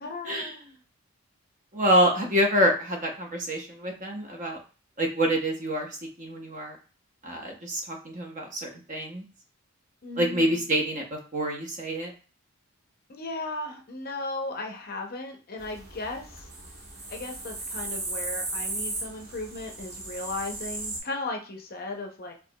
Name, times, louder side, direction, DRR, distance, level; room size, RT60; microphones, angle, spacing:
voice 1, 0.0-0.6 10.0-10.6 13.1-16.3 17.1-22.3, left 2 dB, 40° left, 3 dB, 0.6 m, -36 dB
voice 2, 1.7-4.6 5.0-5.9 6.2-6.8 7.2-9.2 10.2-12.1, equal, 35° right, 1 dB, 0.8 m, -26 dB
sound 1, 15.6-21.0, right 2 dB, 65° right, 1.4 m, -36 dB
4.5 x 2.8 x 2.2 m, 0.36 s
head